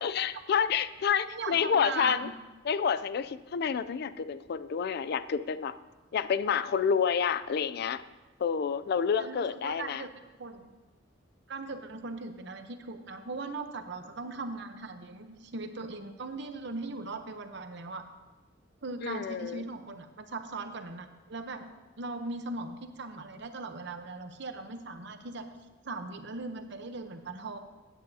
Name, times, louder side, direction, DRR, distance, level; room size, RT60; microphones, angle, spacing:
voice 1, 0.0-2.3 2.6-5.7 6.1-8.0 8.4-10.0 19.0-19.6, left 7 dB, 55° left, 14 dB, 0.4 m, -29 dB
voice 2, 1.3-2.3 9.2-10.1 10.4-10.7 11.5-18.0 18.8-21.7 22.0-25.5 25.8-27.6, right 3 dB, 65° right, 8 dB, 0.8 m, -39 dB
16.0 x 9.0 x 2.8 m, 1.2 s
head